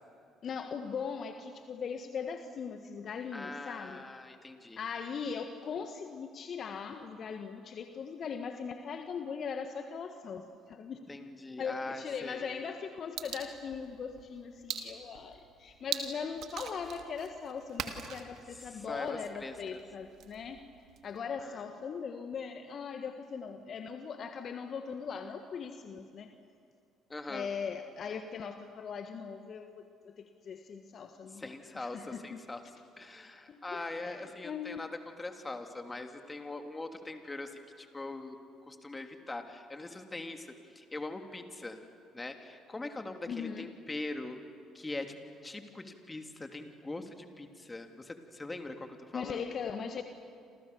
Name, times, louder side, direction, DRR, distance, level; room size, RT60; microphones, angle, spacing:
voice 1, 0.4-4.0 4.8-11.0 11.6-20.6 21.0-26.3 27.3-32.4 33.5-34.8 43.3-43.7 49.1-50.0, left 6 dB, 50° left, 7 dB, 1.5 m, -40 dB
voice 2, 3.3-4.8 11.1-12.5 18.5-19.8 21.4-21.6 27.1-27.5 31.3-32.6 33.0-38.4 38.6-40.5 40.7-41.8 42.1-44.4 44.7-45.1 45.4-49.5, left 2 dB, 20° left, 6 dB, 3.1 m, -42 dB
sound 1, 13.2-21.2, right 8 dB, 60° right, 2.5 m, -43 dB
28.5 x 28.0 x 7.0 m, 2.4 s
hypercardioid pair, 50°, 0 cm